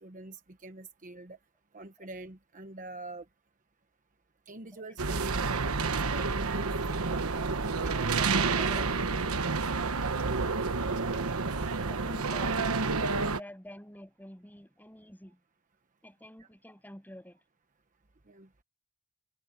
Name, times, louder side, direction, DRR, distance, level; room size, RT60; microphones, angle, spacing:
voice 1, 0.0-1.4 1.7-3.2 4.5-6.7 7.1-7.4 7.8-9.4 18.3-18.5, right 2 dB, 40° right, 1.1 m, -45 dB
sound 1, 5.0-13.4, right 4 dB, 80° right, 1.2 m, -29 dB
voice 2, 5.3-5.7 8.5-9.0 11.9-15.4 16.0-17.4, left 1 dB, 10° left, 7.3 m, -49 dB
head